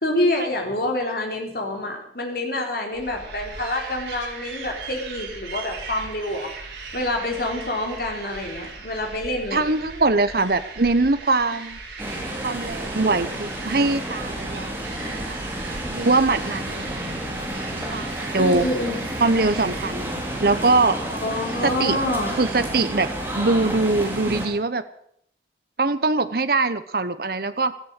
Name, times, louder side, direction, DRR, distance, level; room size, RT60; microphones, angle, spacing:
voice 1, 0.0-6.5 6.9-9.7 18.4-19.0 21.1-22.3, left 1 dB, 55° left, 2 dB, 4.0 m, -27 dB
sound 1, 2.9-19.9, right 4 dB, 85° right, 4.9 m, -38 dB
voice 2, 9.5-11.8 12.4-14.8 15.0-15.3 15.9-17.0 17.9-18.7 19.2-20.1 20.4-21.0 21.6-22.0 22.4-23.1 23.3-24.8 25.8-27.7, right 3 dB, 55° right, 11 dB, 0.9 m, -22 dB
sound 2, 12.0-24.5, right 1 dB, 10° right, 3.7 m, -31 dB
16.0 x 13.5 x 6.6 m, 0.67 s
head